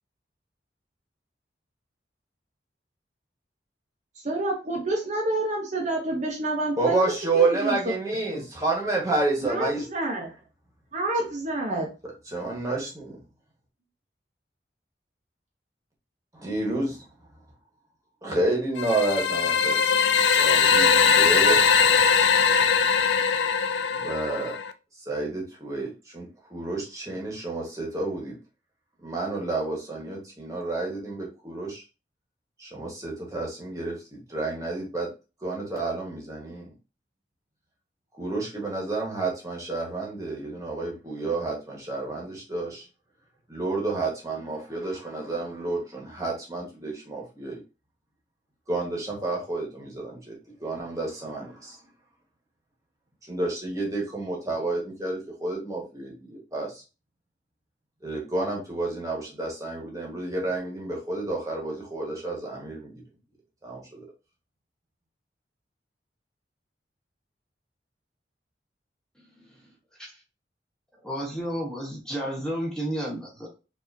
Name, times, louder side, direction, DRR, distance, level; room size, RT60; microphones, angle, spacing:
voice 1, 4.2-7.8 8.3-8.4 9.4-10.3 10.9-11.9, right 2 dB, 40° right, -1 dB, 0.8 m, -28 dB
voice 2, 6.8-9.9 12.0-13.2 16.3-17.1 18.2-19.9 20.2-21.6 24.0-24.6 25.0-28.4 29.0-31.8 32.6-35.1 35.4-36.7 38.1-42.9 43.5-47.6 48.7-50.3 50.6-51.8 53.3-56.8 58.0-63.0 63.6-64.1, right 2 dB, 20° right, -2 dB, 1.3 m, -30 dB
sound 1, 18.8-24.7, left 6 dB, 80° left, 0.4 m, -21 dB
voice 3, 71.0-73.5, right 1 dB, 5° left, -3 dB, 1.1 m, -32 dB
4.9 x 2.8 x 2.6 m, 0.31 s
head